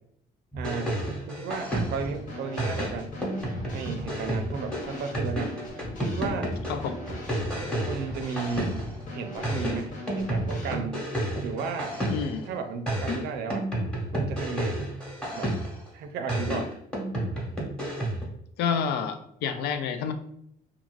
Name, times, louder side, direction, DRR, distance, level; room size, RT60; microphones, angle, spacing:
sound 1, 0.5-2.2 2.6-9.0 9.4-12.4 12.9-15.9 16.3-18.3, right 1 dB, 5° left, 1.0 m, -31 dB
voice 1, 0.5-1.0 1.3-3.1 3.7-5.6 6.0-6.6 7.9-8.8 9.1-11.1 11.4-12.0 12.5-13.7 14.1-14.8 15.3-15.6 15.9-16.7, right 5 dB, 75° right, 6 dB, 0.5 m, -34 dB
Drum kit / Snare drum, 1.7-10.7, left 1 dB, 50° left, 0.8 m, -40 dB
voice 2, 6.7-7.0 12.0-12.5 18.6-20.1, left 6 dB, 80° left, 8 dB, 0.4 m, -29 dB
2.4 x 2.4 x 3.1 m, 0.70 s
cardioid pair, 110°, 17 cm